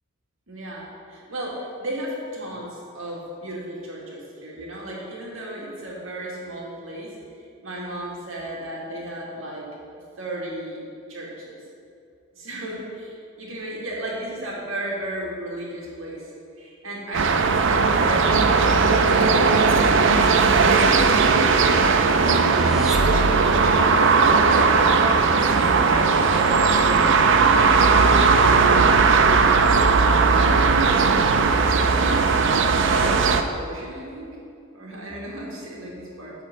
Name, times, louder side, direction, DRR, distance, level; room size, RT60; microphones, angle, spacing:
voice 1, 0.5-7.1 7.6-9.7 10.2-10.8 11.1-11.6 12.3-16.3 16.6-22.3 23.1-24.1 24.4-25.1 25.4-28.8 29.8-30.9 31.3-32.0 32.4-34.4 34.7-36.3, right 1 dB, 85° right, -4 dB, 2.1 m, -34 dB
sound 1, 17.1-33.4, right 4 dB, 65° right, 0.5 m, -18 dB
sound 2, 22.1-23.8, equal, 5° right, 0.6 m, -29 dB
8.8 x 4.4 x 6.5 m, 2.5 s
head